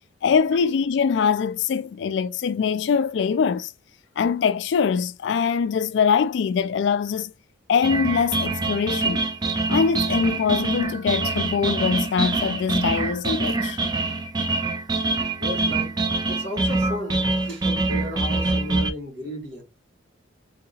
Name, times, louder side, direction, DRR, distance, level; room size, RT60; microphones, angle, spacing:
voice 1, 0.2-3.7 4.2-7.3 7.7-9.2 9.7-13.8, left 6 dB, 65° left, 0.3 m, -23 dB
sound 1, 7.8-18.9, right 3 dB, 20° right, 0.5 m, -25 dB
voice 2, 15.4-16.0 16.3-19.6, left 1 dB, 75° right, 1.8 m, -34 dB
3.6 x 2.8 x 2.8 m
head